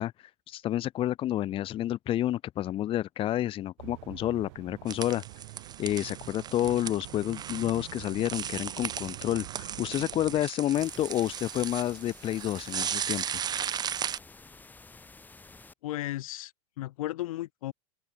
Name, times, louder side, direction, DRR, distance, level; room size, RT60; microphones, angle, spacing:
voice 1, 0.0-5.2 5.8-13.2, left 13 dB, 30° left, 1.3 m, -30 dB
sound 1, 3.8-10.4, right 26 dB, 55° right, 1.8 m, -46 dB
sound 2, 4.9-14.2, right 8 dB, 20° right, 2.0 m, -36 dB
sound 3, 10.7-15.7, left 3 dB, 10° left, 6.2 m, -51 dB
voice 2, 15.8-17.7, left 15 dB, 70° left, 4.3 m, -35 dB
open air
supercardioid pair, 135°, 18 cm